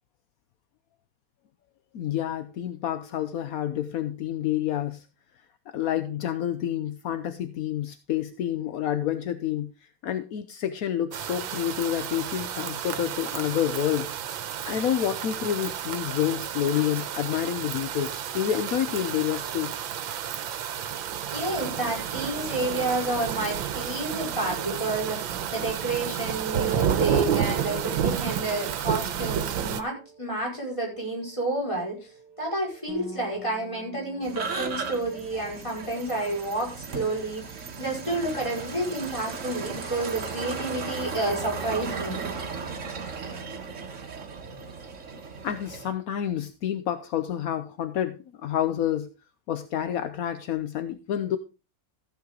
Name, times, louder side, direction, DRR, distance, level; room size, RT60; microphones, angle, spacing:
voice 1, 1.9-5.0 5.7-9.7 10.0-14.1 14.7-19.7 20.2-20.3 45.4-49.1 49.5-51.4, left 10 dB, 65° left, 10 dB, 0.9 m, -28 dB
sound 1, 11.1-29.8, right 9 dB, 75° right, 1.6 m, -31 dB
voice 2, 21.0-42.2, right 2 dB, 15° left, -2 dB, 5.2 m, -30 dB
Bass guitar, 32.9-39.1, left 2 dB, 85° left, 4.2 m, -48 dB
sound 2, 34.2-45.9, right 5 dB, 40° right, 1.4 m, -36 dB
14.5 x 7.7 x 3.8 m, 0.31 s
omnidirectional pair, 2.2 m